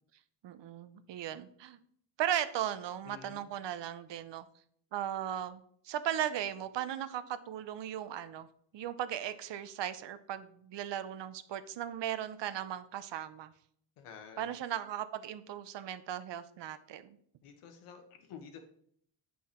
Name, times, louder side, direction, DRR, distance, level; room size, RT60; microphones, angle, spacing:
voice 1, 0.4-1.8 2.2-4.5 4.9-8.5 8.7-13.5 14.4-17.2, right 10 dB, 60° right, 13 dB, 0.7 m, -37 dB
voice 2, 3.0-3.4 14.0-14.5 17.4-18.6, left 6 dB, 90° left, 5 dB, 1.3 m, -50 dB
8.4 x 5.5 x 4.4 m, 0.63 s
cardioid pair, 160°, 49 cm